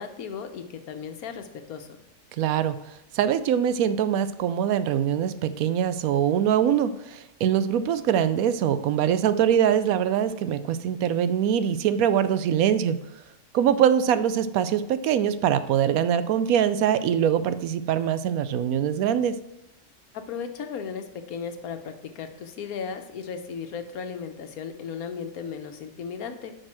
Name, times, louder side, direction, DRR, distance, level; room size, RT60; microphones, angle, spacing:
voice 1, 0.0-1.9 20.1-26.5, left 6 dB, 85° left, 7 dB, 1.3 m, -36 dB
voice 2, 2.4-2.8 3.1-13.0 13.5-19.4, right 9 dB, 80° right, 13 dB, 1.0 m, -23 dB
7.4 x 5.3 x 6.1 m, 0.87 s
omnidirectional pair, 1.5 m